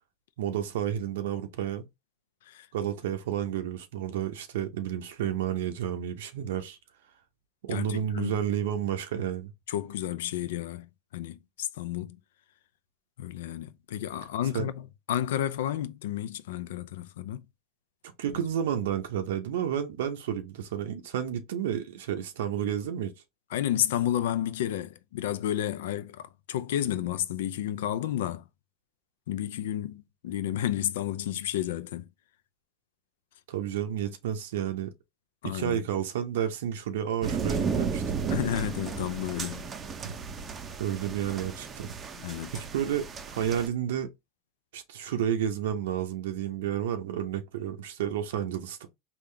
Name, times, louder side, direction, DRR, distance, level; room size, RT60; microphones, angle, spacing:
voice 1, 0.4-1.9 2.7-6.8 7.6-9.5 14.5-14.7 18.2-23.1 33.5-34.9 35.4-38.4 40.0-40.1 40.8-42.0 42.5-44.1 44.7-48.9, right 9 dB, 85° right, 0.6 m, -31 dB
voice 2, 7.7-8.4 9.7-12.2 13.2-17.4 23.5-28.4 29.3-32.1 35.4-35.8 38.3-39.7 42.2-42.6, left 11 dB, 85° left, 0.4 m, -31 dB
sound 1, 37.2-43.7, right 5 dB, 25° right, 0.5 m, -34 dB
3.7 x 2.3 x 3.1 m
supercardioid pair, 125°, 0 cm